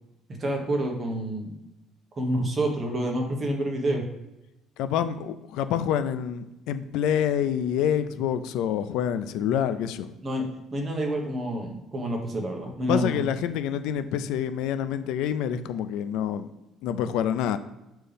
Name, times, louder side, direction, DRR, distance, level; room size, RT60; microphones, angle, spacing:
voice 1, 0.4-1.5 2.2-4.0 10.2-13.2, right 1 dB, 25° right, 2 dB, 1.3 m, -28 dB
voice 2, 4.8-10.1 12.9-16.5 16.8-17.6, left 9 dB, 80° left, 11 dB, 0.4 m, -27 dB
7.4 x 4.4 x 3.4 m, 0.97 s
cardioid pair, 145°, 0 cm